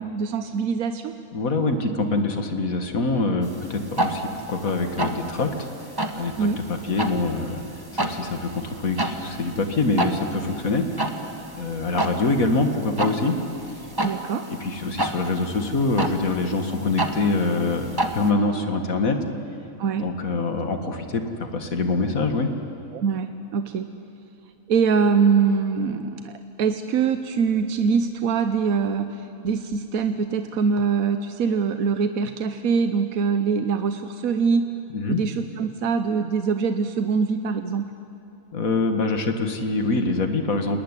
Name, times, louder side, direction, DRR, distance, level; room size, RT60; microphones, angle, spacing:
voice 1, 0.0-1.1 6.4-6.6 14.0-14.5 19.8-20.1 22.9-23.9 24.7-34.7 35.1-37.9, right 5 dB, 90° right, 9 dB, 1.3 m, -23 dB
voice 2, 1.3-5.6 6.1-13.4 13.7-13.9 14.6-19.2 20.0-22.5 34.9-35.2 38.5-40.8, left 3 dB, 80° left, 6 dB, 2.3 m, -25 dB
sound 1, 3.4-18.3, right 1 dB, 15° right, 1.5 m, -31 dB
30.0 x 19.5 x 9.9 m, 2.9 s
omnidirectional pair, 1.4 m